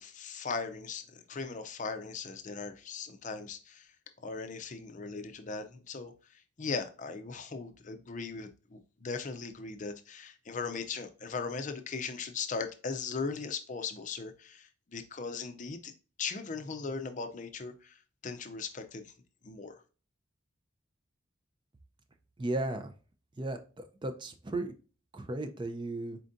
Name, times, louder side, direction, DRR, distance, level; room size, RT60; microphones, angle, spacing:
voice 1, 0.0-3.9 4.2-6.1 6.6-15.9 16.2-17.9 18.2-19.1 19.4-19.8, left 4 dB, 40° left, 7 dB, 0.5 m, -38 dB
voice 2, 22.4-22.9 23.4-24.7 25.1-26.2, right 2 dB, 25° right, 8 dB, 0.4 m, -35 dB
4.4 x 3.7 x 2.5 m, 0.35 s
head